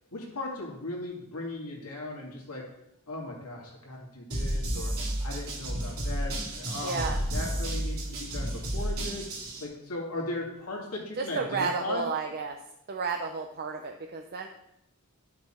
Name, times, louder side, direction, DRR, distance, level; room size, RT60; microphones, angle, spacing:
voice 1, 0.1-2.6 3.1-9.3 9.6-12.0, left 2 dB, 80° left, -2 dB, 2.2 m, -37 dB
sound 1, 4.3-9.6, right 1 dB, 65° right, 2.9 m, -32 dB
voice 2, 6.8-7.2 11.2-12.6 12.9-14.5, right 4 dB, 45° right, 4 dB, 0.6 m, -32 dB
12.0 x 5.9 x 4.4 m, 0.85 s
head